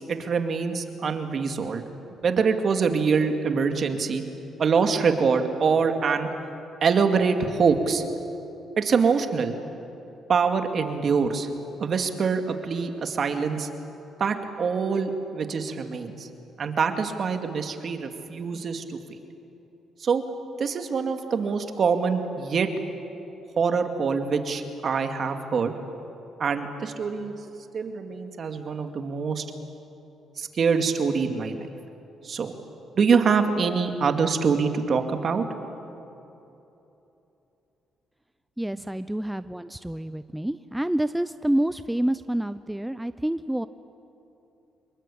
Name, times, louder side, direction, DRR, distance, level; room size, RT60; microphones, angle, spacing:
voice 1, 0.0-1.8 2.2-4.2 4.6-6.3 6.8-8.0 8.8-9.6 10.3-11.5 11.8-13.7 14.2-16.3 16.6-19.0 20.0-20.2 20.6-22.7 23.6-25.7 26.4-27.4 27.7-29.4 30.4-31.7 32.2-32.5 33.0-35.4, right 5 dB, 50° right, 6 dB, 2.3 m, -24 dB
voice 2, 38.6-43.7, right 1 dB, 5° right, 13 dB, 0.6 m, -28 dB
26.5 x 22.5 x 8.7 m, 3.0 s
cardioid pair, 90°, 0 cm